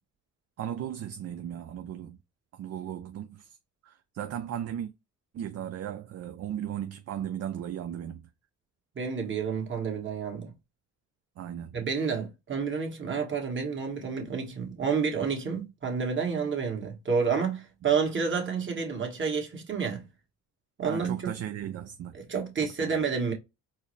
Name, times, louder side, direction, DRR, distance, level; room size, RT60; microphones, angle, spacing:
voice 1, 0.6-2.2 2.5-3.6 3.8-4.9 5.3-8.3 11.4-11.8 20.8-22.2 22.8-23.0, right 10 dB, 55° right, 0.5 m, -36 dB
voice 2, 8.9-10.5 11.7-20.0 20.8-21.3 22.3-23.3, right 5 dB, 40° right, 1.5 m, -29 dB
4.6 x 2.0 x 3.2 m
cardioid pair, 90°, 30 cm